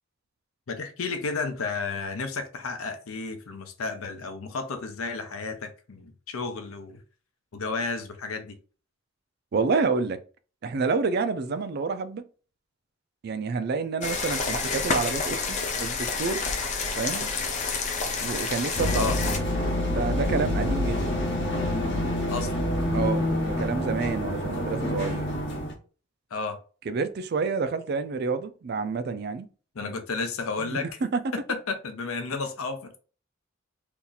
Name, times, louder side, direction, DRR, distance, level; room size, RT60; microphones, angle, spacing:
voice 1, 0.7-7.0 7.5-8.6 18.9-19.2 22.3-22.6 26.3-26.6 29.7-30.9 31.3-33.0, left 4 dB, 80° left, 0.6 m, -32 dB
voice 2, 9.5-10.2 10.6-12.2 13.2-16.5 17.0-17.3 18.2-19.3 19.8-21.0 22.9-25.3 26.9-29.5 29.8-29.9 30.6-31.3, right 4 dB, 50° right, 0.3 m, -29 dB
sound 1, 14.0-19.4, left 4 dB, 35° left, 0.5 m, -29 dB
sound 2, 18.8-25.7, left 1 dB, 55° left, 0.9 m, -27 dB
2.8 x 2.4 x 3.9 m
head